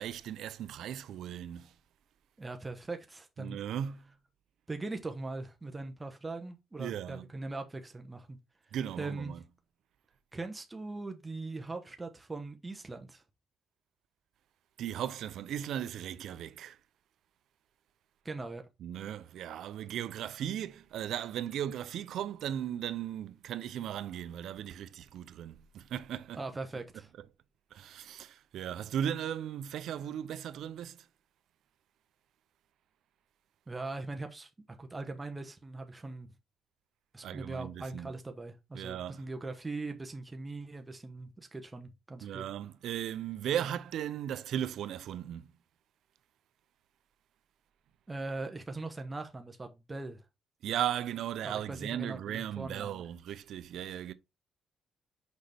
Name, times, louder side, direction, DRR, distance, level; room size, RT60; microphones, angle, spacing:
voice 1, 0.0-1.7 3.4-4.1 6.8-7.3 8.7-9.4 14.8-16.8 18.8-26.4 27.7-31.1 37.2-38.1 38.7-39.2 42.2-45.5 50.6-54.1, right 10 dB, 75° right, 0.6 m, -37 dB
voice 2, 2.4-3.6 4.7-8.4 9.0-9.4 10.3-13.2 18.2-18.6 26.3-27.1 33.7-34.5 34.8-36.3 37.1-42.5 48.1-50.2 51.4-53.1, right 3 dB, 20° right, 1.0 m, -40 dB
6.3 x 5.3 x 3.4 m
cardioid pair, 90°, 0 cm